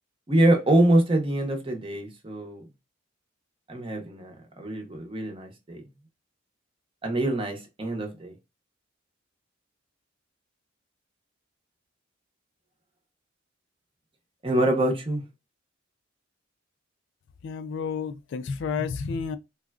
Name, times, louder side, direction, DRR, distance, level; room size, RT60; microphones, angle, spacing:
voice 1, 0.3-2.6 3.7-5.8 7.0-8.3 14.4-15.2, right 1 dB, 25° right, 0.7 m, -25 dB
voice 2, 17.4-19.4, left 5 dB, 60° left, 0.3 m, -31 dB
3.6 x 2.2 x 2.3 m
head